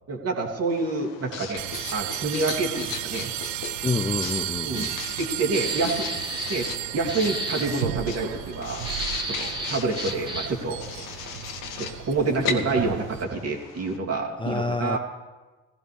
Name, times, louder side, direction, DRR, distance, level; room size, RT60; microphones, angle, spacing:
voice 1, 0.1-1.6 1.9-3.3 4.6-4.9 5.2-6.1 6.5-6.7 6.9-8.9 9.2-10.8 11.8-15.0, right 3 dB, 40° right, -1 dB, 2.8 m, -27 dB
Writing, 0.7-14.0, left 7 dB, 65° left, 1.4 m, -38 dB
sound 1, 1.6-13.2, right 13 dB, 80° right, 0.6 m, -34 dB
voice 2, 3.8-4.9 14.4-15.0, left 3 dB, 15° left, 7 dB, 0.6 m, -28 dB
sound 2, 5.5-6.8 7.1-7.7 8.8-10.6, right 1 dB, 15° right, 2.0 m, -32 dB
18.5 x 15.5 x 3.5 m, 1.2 s
hypercardioid pair, 55°, 37 cm